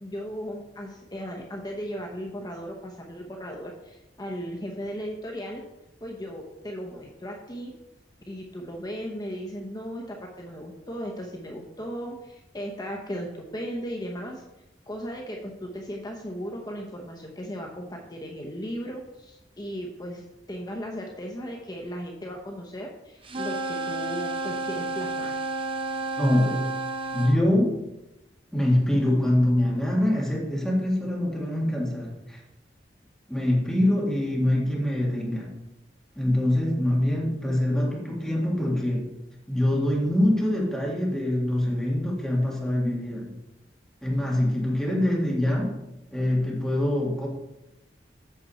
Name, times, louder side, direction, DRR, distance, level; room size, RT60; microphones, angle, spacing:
voice 1, 0.0-5.6 6.0-7.7 8.3-14.4 14.9-25.4, equal, 25° left, 0 dB, 0.9 m, -36 dB
sound 1, 23.2-27.4, right 2 dB, 30° right, 0.7 m, -31 dB
voice 2, 26.2-26.6 27.1-27.7 28.5-32.4 33.3-35.5 36.2-39.1 39.5-43.3 44.0-45.7 46.1-47.3, left 1 dB, 5° left, -4 dB, 1.9 m, -24 dB
8.3 x 6.8 x 4.2 m, 0.93 s
head